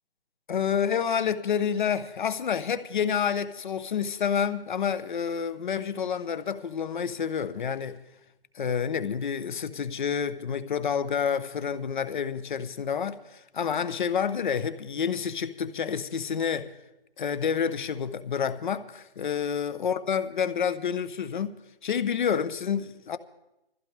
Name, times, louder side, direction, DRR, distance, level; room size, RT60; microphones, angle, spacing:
voice 1, 0.5-8.0 8.5-16.7 17.2-23.2, left 7 dB, 50° left, 0.9 m, -29 dB
21.5 x 15.0 x 3.4 m
hypercardioid pair, 160°, 30 cm